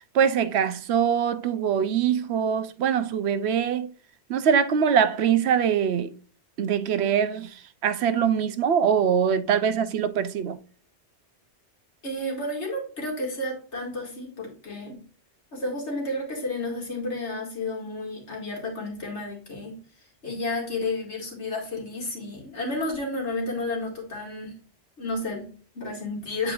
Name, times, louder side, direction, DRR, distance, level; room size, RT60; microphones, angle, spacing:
voice 1, 0.1-3.9 4.3-6.1 6.6-7.5 7.8-10.6, right 8 dB, 70° right, 0.9 m, -23 dB
voice 2, 12.0-15.0 15.5-19.8 20.2-24.6 25.0-26.5, left 2 dB, 80° left, 2.5 m, -31 dB
8.3 x 4.7 x 2.5 m
omnidirectional pair, 1.2 m